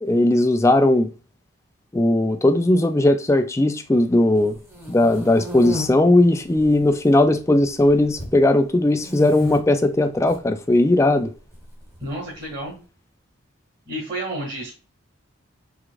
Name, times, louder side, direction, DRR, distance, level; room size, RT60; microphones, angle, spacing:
voice 1, 0.0-1.1 1.9-4.6 4.9-11.3, left 1 dB, 15° left, 0.3 m, -18 dB
sound 1, 4.5-5.9 6.5-7.1 7.4-8.4 9.0-9.6 10.1-10.4 11.5-12.4, left 2 dB, 10° right, 1.1 m, -33 dB
voice 2, 12.0-12.7 13.9-14.7, right 1 dB, 40° right, 2.0 m, -30 dB
4.8 x 3.6 x 2.4 m
head